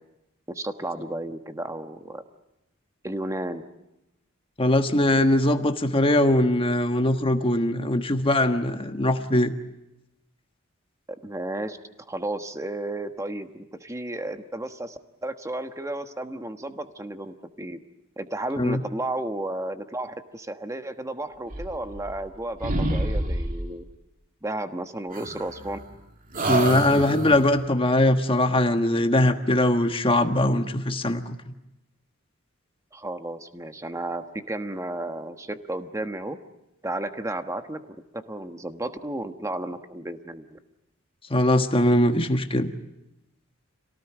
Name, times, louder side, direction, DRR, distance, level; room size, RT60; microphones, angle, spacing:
voice 1, 0.5-2.2 3.0-3.6 11.1-17.8 18.2-23.8 24.4-25.8 32.9-36.4 36.8-37.8 38.1-40.6, right 1 dB, 15° right, 8 dB, 1.3 m, -33 dB
voice 2, 4.6-9.5 18.6-18.8 26.5-31.4 41.3-42.7, left 1 dB, 25° left, 7 dB, 1.4 m, -21 dB
sound 1, 21.5-22.4 22.6-23.8 25.1-26.0 26.3-27.6, right 1 dB, 40° right, 2.4 m, -28 dB
27.0 x 18.5 x 10.0 m, 0.91 s
head